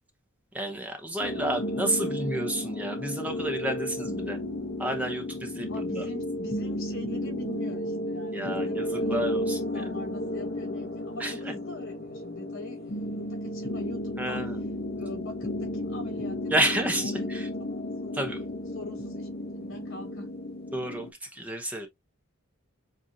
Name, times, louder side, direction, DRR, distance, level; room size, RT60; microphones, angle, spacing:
voice 1, 0.5-4.4 4.8-6.0 8.3-9.9 11.2-11.5 14.2-14.6 16.5-17.5 18.1-18.4 20.7-21.9, right 1 dB, 5° right, 0.8 m, -31 dB
sound 1, 1.2-21.1, left 1 dB, 45° left, 0.8 m, -33 dB
voice 2, 5.7-14.5 15.0-18.3 18.7-20.3, left 2 dB, 60° left, 3.8 m, -42 dB
7.5 x 2.6 x 2.7 m
head